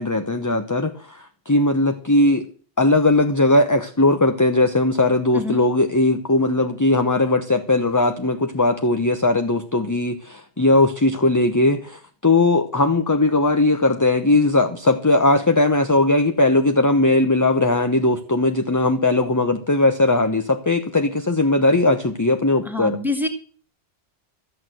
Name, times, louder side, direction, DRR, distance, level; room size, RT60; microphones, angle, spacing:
voice 1, 0.0-2.5 2.8-23.0, left 2 dB, 15° left, 0.9 m, -19 dB
voice 2, 22.6-23.3, left 2 dB, ahead, 2.1 m, -25 dB
13.0 x 8.8 x 7.7 m
omnidirectional pair, 1.2 m